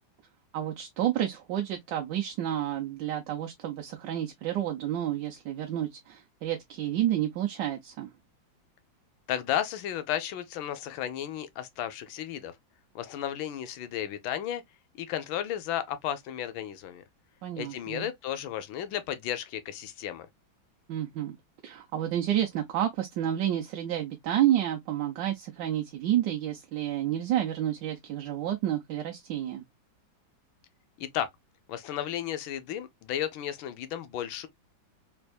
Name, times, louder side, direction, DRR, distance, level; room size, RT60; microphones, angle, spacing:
voice 1, 0.5-8.1 17.4-18.1 20.9-21.4 21.6-29.6, right 11 dB, 75° right, 1.2 m, -30 dB
voice 2, 9.3-12.5 12.9-14.6 15.0-17.0 17.6-20.3 31.0-31.3 31.7-34.5, left 10 dB, 80° left, 1.4 m, -33 dB
3.5 x 3.4 x 2.2 m
omnidirectional pair, 2.1 m